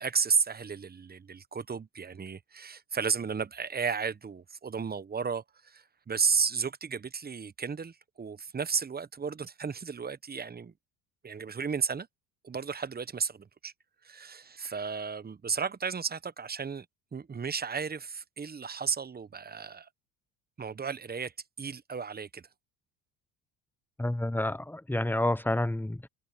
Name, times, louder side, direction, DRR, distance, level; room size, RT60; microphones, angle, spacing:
voice 1, 0.0-10.7 11.2-12.1 12.4-13.7 14.0-16.9 17.1-19.9 20.6-21.3 21.6-22.4, right 5 dB, 20° right, 1.1 m, -33 dB
voice 2, 24.0-26.1, left 1 dB, 5° left, 1.0 m, -29 dB
supercardioid pair, 85°, 42 cm